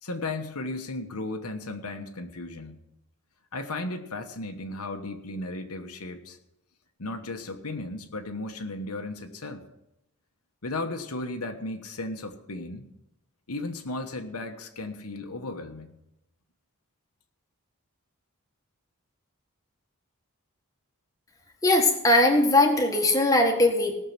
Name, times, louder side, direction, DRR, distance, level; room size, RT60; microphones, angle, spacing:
voice 1, 0.0-2.8 3.5-6.4 7.0-9.7 10.6-12.9 13.5-15.9, left 2 dB, 90° left, 4 dB, 1.2 m, -35 dB
voice 2, 21.6-23.9, left 1 dB, 15° left, 3 dB, 1.5 m, -20 dB
18.5 x 6.7 x 5.9 m, 0.87 s
head